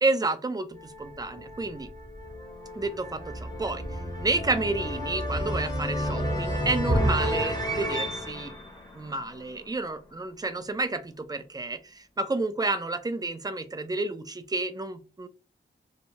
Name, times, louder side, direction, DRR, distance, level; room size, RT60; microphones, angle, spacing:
voice 1, 0.0-1.9 2.7-3.8 4.2-8.6 8.9-15.3, right 3 dB, 20° right, 10 dB, 0.4 m, -30 dB
sound 1, 0.7-9.8, equal, 20° left, 0.9 m, -31 dB
2.8 x 2.2 x 2.8 m, 0.34 s
wide cardioid pair, 75°, 21 cm